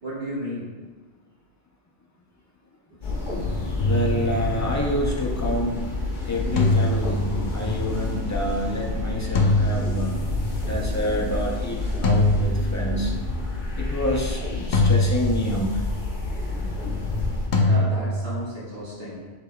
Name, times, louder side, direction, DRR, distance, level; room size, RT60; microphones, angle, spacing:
voice 1, 0.0-0.7 2.9-3.0 17.6-19.3, equal, 70° right, -8 dB, 1.8 m, -33 dB
sound 1, 3.0-17.5, left 2 dB, 50° left, 1.0 m, -29 dB
Organ, 3.2-14.0, left 2 dB, 10° right, 1.3 m, -42 dB
sound 2, 3.8-4.8 6.6-7.7 9.4-10.5 12.0-13.2 14.7-15.9 17.5-18.4, left 1 dB, 80° left, 0.9 m, -23 dB
voice 2, 3.8-5.9 6.3-10.1 10.6-13.1 13.8-15.8, left 1 dB, 25° left, -2 dB, 0.3 m, -28 dB
5.5 x 3.9 x 2.2 m, 1.4 s
omnidirectional pair, 1.1 m